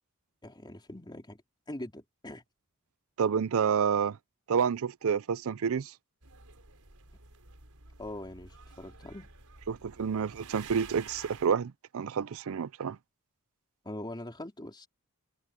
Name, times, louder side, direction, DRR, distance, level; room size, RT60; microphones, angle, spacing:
voice 1, 0.4-1.4 1.7-2.4 8.0-9.3 13.8-14.9, left 1 dB, 20° left, 3.2 m, -42 dB
voice 2, 3.2-4.2 4.5-5.9 9.7-13.0, right 6 dB, 65° right, 0.5 m, -29 dB
sound 1, 6.2-11.5, right 4 dB, 85° right, 4.5 m, -50 dB
head